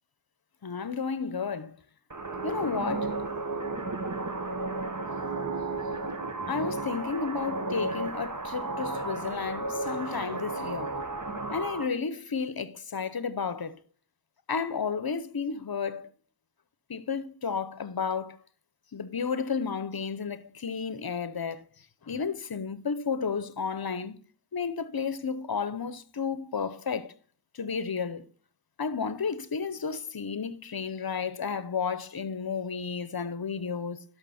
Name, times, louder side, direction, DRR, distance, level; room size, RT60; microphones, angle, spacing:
voice 1, 0.6-1.8 2.4-3.1 6.5-11.0 11.5-13.8 14.5-16.1 16.9-18.4 18.9-21.7 22.1-24.2 24.5-27.1 27.5-28.3 28.8-34.0, left 5 dB, 60° left, 0.8 m, -32 dB
sound 1, 2.1-11.9, right 2 dB, 45° right, 1.5 m, -33 dB
11.5 x 6.6 x 4.2 m
wide cardioid pair, 60°, 42 cm